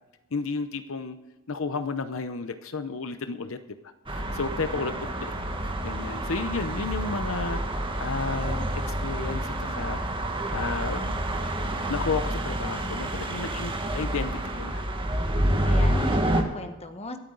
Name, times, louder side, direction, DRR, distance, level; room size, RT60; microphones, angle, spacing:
voice 1, 0.3-1.2 1.5-3.6 4.1-5.3 5.6-10.0 10.5-11.1 11.9-14.9, left 4 dB, 70° left, 10 dB, 0.8 m, -32 dB
sound 1, 4.1-16.4, right 1 dB, 25° right, 1.8 m, -28 dB
voice 2, 12.8-13.2 15.0-17.2, left 1 dB, 30° left, 7 dB, 1.2 m, -38 dB
24.5 x 8.8 x 3.9 m, 1.1 s
head